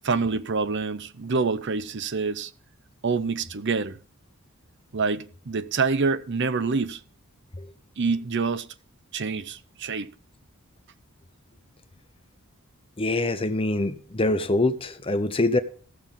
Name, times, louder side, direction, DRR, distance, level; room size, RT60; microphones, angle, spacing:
voice 1, 0.0-2.5 3.0-4.0 4.9-7.0 8.0-8.7 9.1-10.1, right 4 dB, 55° right, 0.6 m, -26 dB
voice 2, 13.0-15.6, left 2 dB, 25° left, 0.7 m, -24 dB
15.5 x 7.2 x 3.7 m
head